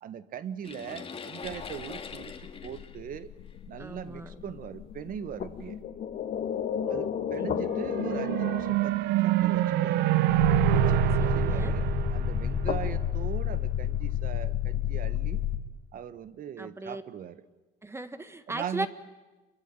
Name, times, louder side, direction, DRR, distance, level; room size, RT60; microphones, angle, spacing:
voice 1, 0.0-3.3 3.7-5.8 6.9-10.0 10.7-15.4 15.9-17.5 18.5-18.9, right 9 dB, 55° right, 13 dB, 1.5 m, -40 dB
sound 1, 0.6-4.0 4.8-4.9 5.5-5.7, left 5 dB, 35° left, 2.2 m, -42 dB
sound 2, 1.5-8.8 10.3-15.6, left 9 dB, 60° left, 2.2 m, -31 dB
voice 2, 3.8-4.4 6.8-7.1 7.4-7.6 11.2-11.7 16.6-17.0 17.8-18.9, right 2 dB, 15° right, 10 dB, 1.5 m, -37 dB
sound 3, 7.6-13.1, right 15 dB, 85° right, 0.9 m, -26 dB
27.5 x 23.0 x 9.1 m, 1.1 s
cardioid pair, 110°, 17 cm